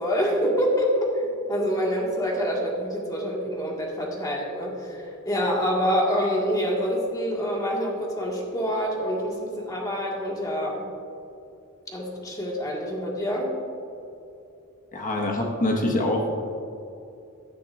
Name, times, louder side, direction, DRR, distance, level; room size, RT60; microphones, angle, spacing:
voice 1, 0.0-10.9 11.9-13.5, equal, 15° left, -2 dB, 1.8 m, -26 dB
voice 2, 14.9-16.3, left 1 dB, 35° left, 1 dB, 1.4 m, -24 dB
16.5 x 10.0 x 2.5 m, 2.7 s
head